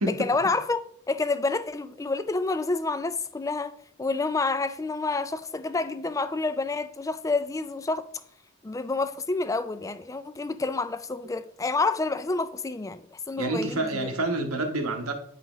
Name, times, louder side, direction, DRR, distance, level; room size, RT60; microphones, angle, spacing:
voice 1, 0.2-0.8 1.1-8.1 8.6-13.8, left 3 dB, 15° left, 0.3 m, -28 dB
voice 2, 13.4-15.1, right 2 dB, 90° right, 1.2 m, -28 dB
9.2 x 5.5 x 3.0 m
head